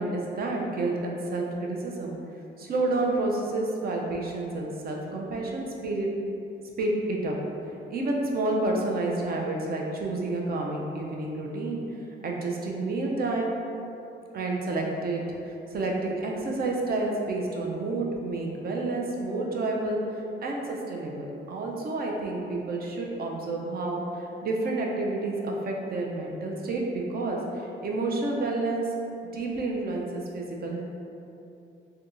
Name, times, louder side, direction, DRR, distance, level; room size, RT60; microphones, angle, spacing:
voice 1, 0.0-2.2 2.6-6.1 6.8-7.3 7.9-11.8 12.2-13.5 14.3-20.0 20.4-24.0 24.4-27.4 27.8-28.9 29.3-30.8, right 2 dB, 50° right, 0 dB, 0.5 m, -29 dB
3.4 x 2.8 x 2.5 m, 2.7 s
cardioid pair, 90°, 20 cm